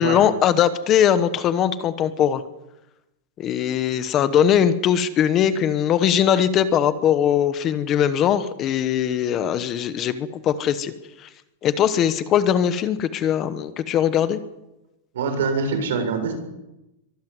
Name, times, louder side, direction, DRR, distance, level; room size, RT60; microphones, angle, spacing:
voice 1, 0.0-2.4 3.4-10.9 11.2-11.3 11.6-14.4, left 9 dB, 20° left, 12 dB, 1.0 m, -20 dB
voice 2, 15.1-16.3, right 4 dB, 85° right, 6 dB, 7.1 m, -24 dB
23.5 x 14.0 x 9.2 m, 0.95 s
supercardioid pair, 175°, 0 cm